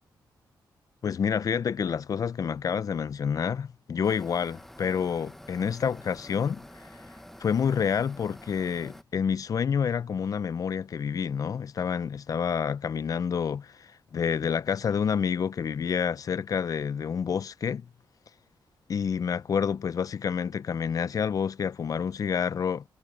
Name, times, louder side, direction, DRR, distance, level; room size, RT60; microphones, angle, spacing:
voice 1, 1.0-6.6 7.4-17.9 18.9-22.8, left 7 dB, 50° left, 0.5 m, -28 dB
sound 1, 4.0-9.0, left 1 dB, 5° left, 0.8 m, -48 dB
wide cardioid pair, 140°, 8 cm